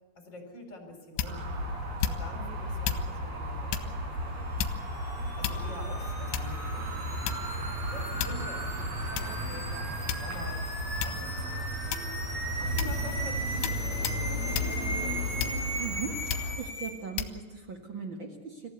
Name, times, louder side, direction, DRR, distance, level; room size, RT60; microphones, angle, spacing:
voice 1, 0.1-1.6 2.0-4.9 5.4-10.6 11.0-15.5, left 1 dB, 25° left, 3 dB, 4.3 m, -47 dB
sound 1, 1.2-1.5 2.0-2.4 2.8-3.1 3.7-3.9 4.6-5.0 5.4-5.9 6.3-6.6 7.3-7.6 8.2-8.5 9.2-9.3 10.1-10.5 11.0-11.3 11.9-12.3 12.8-13.0 13.6-13.8 14.0-14.2 14.5-14.8 15.4-15.8 16.3-16.5 17.2-17.4, left 10 dB, 75° left, 3.2 m, -33 dB
sound 2, 1.2-16.5, equal, 40° right, 5.5 m, -34 dB
sound 3, 4.7-16.9, right 1 dB, 5° left, 4.8 m, -38 dB
voice 2, 15.8-18.6, right 6 dB, 80° right, 3 dB, 1.0 m, -39 dB
26.5 x 15.0 x 8.2 m, 1.2 s
omnidirectional pair, 5.4 m